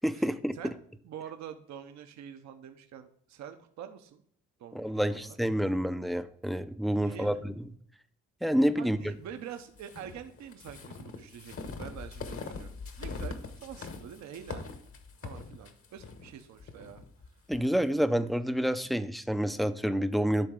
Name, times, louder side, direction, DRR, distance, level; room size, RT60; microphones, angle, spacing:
voice 1, 0.0-0.7 4.7-7.7 8.4-9.1 17.5-20.5, equal, ahead, 11 dB, 0.4 m, -28 dB
voice 2, 0.5-4.2 4.6-5.4 7.0-7.4 8.8-14.7 15.2-17.0, right 9 dB, 65° right, 7 dB, 0.8 m, -46 dB
sound 1, 9.8-17.7, left 4 dB, 45° left, 1.1 m, -42 dB
10.5 x 3.9 x 3.7 m, 0.64 s
cardioid pair, 90°, 30 cm